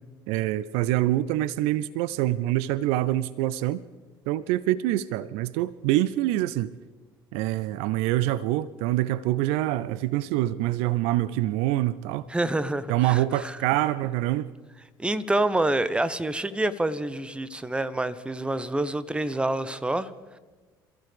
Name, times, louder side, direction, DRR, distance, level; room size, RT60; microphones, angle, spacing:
voice 1, 0.3-3.8 4.3-6.7 7.3-12.3 12.9-14.5, right 15 dB, 60° right, 0.4 m, -25 dB
voice 2, 12.3-13.6 15.0-20.1, right 2 dB, 10° right, 0.8 m, -27 dB
27.5 x 14.5 x 3.4 m
figure-of-eight pair, 60°, 12 cm